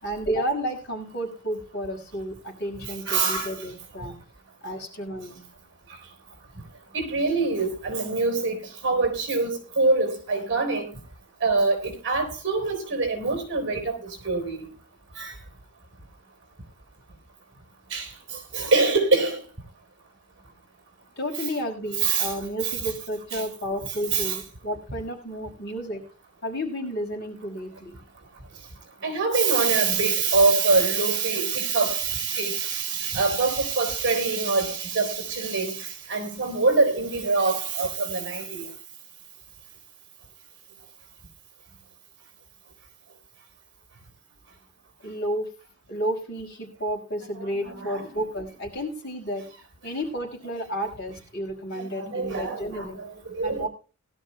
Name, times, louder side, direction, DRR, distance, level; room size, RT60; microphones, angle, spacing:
voice 1, 0.0-4.1 4.6-5.5 21.2-26.1 26.4-28.0 45.0-45.5 45.9-49.5 49.8-53.0 53.4-53.7, equal, 50° left, 5.5 m, -31 dB
voice 2, 2.8-3.6 6.9-10.9 11.4-14.7 15.2-15.4 17.9-19.4 21.4-21.5 22.0-22.3 22.6-22.7 23.3-23.4 24.1-24.4 29.0-38.7 47.5-48.1 51.7-53.7, right 4 dB, 55° right, 3.9 m, -25 dB
20.5 x 12.5 x 2.2 m
head